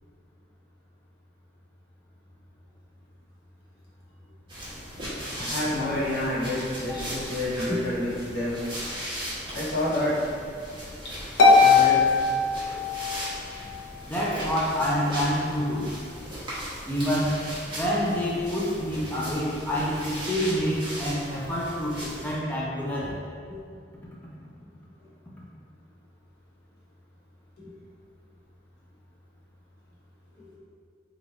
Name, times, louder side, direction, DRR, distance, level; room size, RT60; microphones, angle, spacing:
sound 1, 4.5-22.3, equal, 25° right, 0.8 m, -37 dB
voice 1, 5.4-8.6 9.5-10.2 11.6-12.0 23.5-23.6, left 1 dB, 60° left, -8 dB, 1.1 m, -28 dB
Harp, 11.4-13.3, left 4 dB, 85° left, 0.5 m, -19 dB
voice 2, 14.0-15.9 16.9-17.4 17.8-23.2, equal, 10° left, -6 dB, 0.4 m, -27 dB
3.2 x 2.3 x 3.8 m, 2.1 s
head